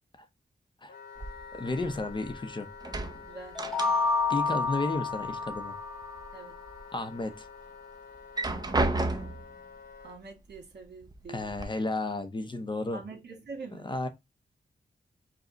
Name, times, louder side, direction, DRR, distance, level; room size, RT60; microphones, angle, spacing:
Wind instrument woodwind instrument, 0.9-10.2, left 6 dB, 60° left, 1.0 m, -48 dB
sound 1, 1.2-2.4 2.7-4.3 4.6-5.6 6.0-6.8 7.3-7.4 8.1-9.5 10.5-10.6 11.0-11.6, right 2 dB, 25° right, 0.5 m, -33 dB
voice 1, 1.5-2.7 4.3-5.7 6.9-7.5 11.3-13.0 13.8-14.1, left 2 dB, 25° left, 0.7 m, -33 dB
voice 2, 3.3-3.6 6.3-6.5 10.0-11.5 12.9-13.9, right 4 dB, 80° right, 1.8 m, -44 dB
sound 2, 3.5-6.3, left 4 dB, ahead, 1.1 m, -29 dB
5.0 x 2.2 x 3.8 m
wide cardioid pair, 140°, 17 cm